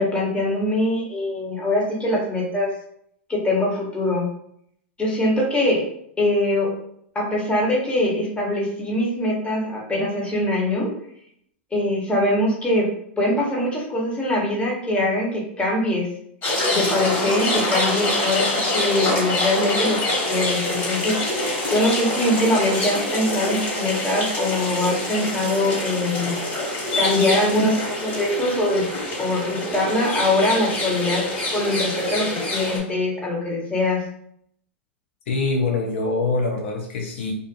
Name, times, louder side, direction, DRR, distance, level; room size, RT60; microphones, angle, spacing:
voice 1, 0.0-2.7 3.3-4.3 5.0-5.8 6.2-6.7 7.1-10.9 11.7-12.9 13.2-16.1 16.7-20.0 20.3-21.2 21.7-26.4 26.9-28.8 29.2-31.2 31.5-34.0, left 1 dB, 15° left, -3 dB, 1.0 m, -22 dB
sound 1, 16.4-32.8, left 1 dB, 35° left, 1.5 m, -25 dB
voice 2, 35.3-37.3, left 3 dB, 70° left, 0 dB, 0.5 m, -24 dB
2.5 x 2.4 x 2.5 m, 0.69 s
hypercardioid pair, 105°, 7 cm